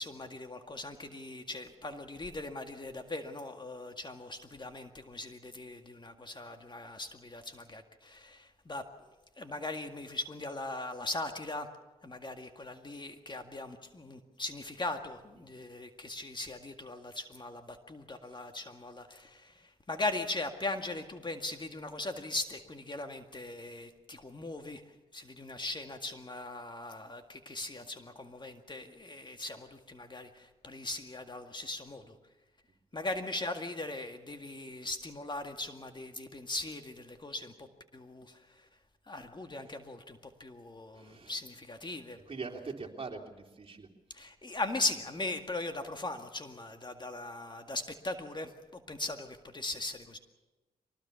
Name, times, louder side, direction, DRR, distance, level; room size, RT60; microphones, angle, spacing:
voice 1, 0.0-11.7 12.0-32.2 32.9-37.7 37.9-38.7 39.0-42.2 44.1-50.2, left 2 dB, 30° left, 6 dB, 2.0 m, -39 dB
voice 2, 40.9-41.4 42.3-43.9, right 4 dB, 40° right, 1 dB, 3.4 m, -43 dB
24.0 x 19.5 x 7.0 m, 1.1 s
cardioid pair, 60°, 15 cm